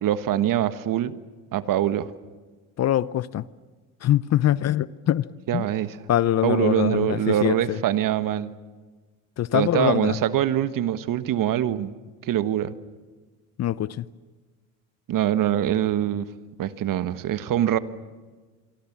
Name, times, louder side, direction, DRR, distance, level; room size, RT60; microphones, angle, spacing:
voice 1, 0.0-1.1 1.5-2.1 5.5-6.0 6.4-8.5 9.5-11.9 12.2-12.7 15.1-16.3 16.6-17.8, right 11 dB, 50° right, 1.4 m, -24 dB
voice 2, 2.8-3.4 4.0-5.2 5.5-5.7 6.1-7.8 9.4-10.2 13.6-14.0, left 12 dB, 40° left, 0.7 m, -23 dB
27.0 x 24.0 x 7.4 m
hypercardioid pair, 75°, 42 cm